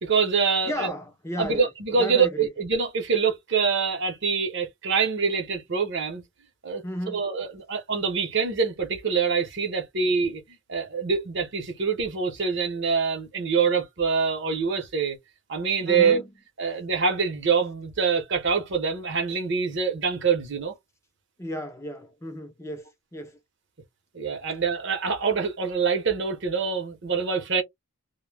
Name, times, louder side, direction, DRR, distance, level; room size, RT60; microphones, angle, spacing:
voice 1, 0.0-0.9 1.4-6.2 6.6-6.8 7.1-10.4 10.7-15.2 15.5-16.2 16.6-20.7 24.1-27.6, right 5 dB, 55° right, 0.7 m, -25 dB
voice 2, 0.6-1.7 1.9-2.5 6.8-7.3 15.9-16.3 21.4-23.4, equal, 15° left, 0.4 m, -34 dB
2.1 x 2.0 x 3.2 m
head